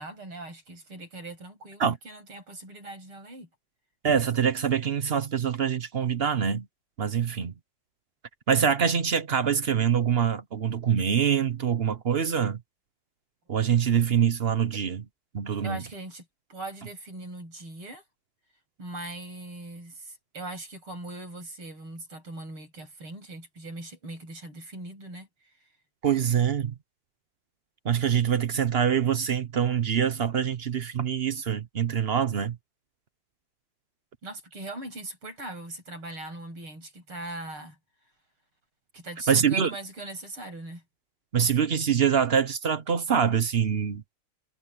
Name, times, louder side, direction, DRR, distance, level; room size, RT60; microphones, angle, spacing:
voice 1, 0.0-3.5 15.6-18.0 18.8-25.3 34.2-37.8 38.9-40.8, right 2 dB, 75° right, 9.0 m, -40 dB
voice 2, 4.0-6.7 7.0-7.5 8.5-12.6 13.5-15.0 15.3-15.8 26.0-26.7 27.8-32.6 39.3-39.7 41.3-44.2, right 7 dB, 60° right, 0.6 m, -25 dB
omnidirectional pair, 2.4 m